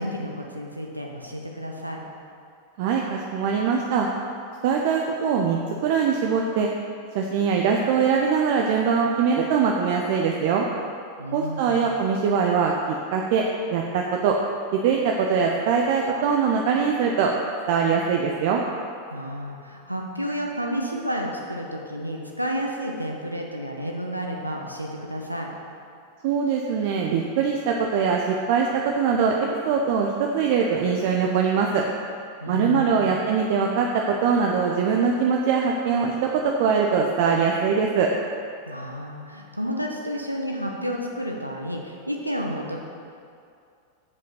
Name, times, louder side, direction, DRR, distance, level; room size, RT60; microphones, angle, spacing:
voice 1, 0.0-2.0 11.2-12.0 19.1-25.5 32.4-33.1 38.7-42.8, equal, 90° right, 0 dB, 0.7 m, -31 dB
voice 2, 2.8-4.1 4.6-6.7 7.1-10.7 11.3-12.7 13.1-13.5 13.7-14.4 14.7-17.3 17.7-18.6 26.2-29.4 29.7-31.8 32.5-38.1, right 6 dB, 50° right, 0 dB, 0.6 m, -22 dB
7.7 x 5.2 x 5.7 m, 2.4 s
figure-of-eight pair, 90°, 0 cm